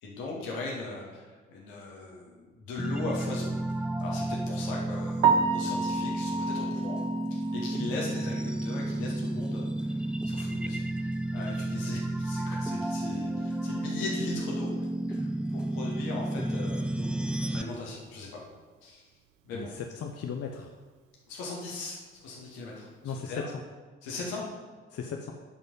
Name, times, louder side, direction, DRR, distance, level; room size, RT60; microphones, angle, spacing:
voice 1, 0.0-3.5 4.0-7.0 7.3-18.4 18.8-19.0 19.5-19.7 21.3-23.5 24.0-24.4, left 3 dB, 70° left, -3 dB, 2.1 m, -39 dB
sound 1, 2.8-17.6, right 1 dB, 5° right, 0.5 m, -32 dB
Piano, 5.2-9.2 9.5-9.7 10.2-10.3 10.6-10.7 13.8-13.9 22.4-22.6, right 5 dB, 65° right, 0.8 m, -30 dB
voice 2, 19.5-20.7 23.0-23.4 24.9-25.3, left 6 dB, 40° left, 3 dB, 0.8 m, -36 dB
9.8 x 5.4 x 5.4 m, 1.4 s
figure-of-eight pair, 40°, 36 cm